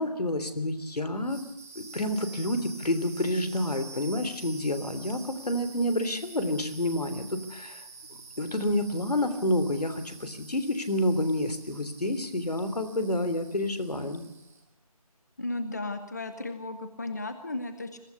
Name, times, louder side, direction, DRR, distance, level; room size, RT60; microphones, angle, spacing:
voice 1, 0.0-1.4 1.7-7.9 8.4-14.3, left 1 dB, 80° left, 10 dB, 3.3 m, -29 dB
sound 1, 1.1-14.7, right 4 dB, 20° right, 2.7 m, -48 dB
voice 2, 15.4-18.0, left 2 dB, 25° left, 9 dB, 1.0 m, -35 dB
22.5 x 14.5 x 8.3 m, 0.85 s
figure-of-eight pair, 175°, 20 cm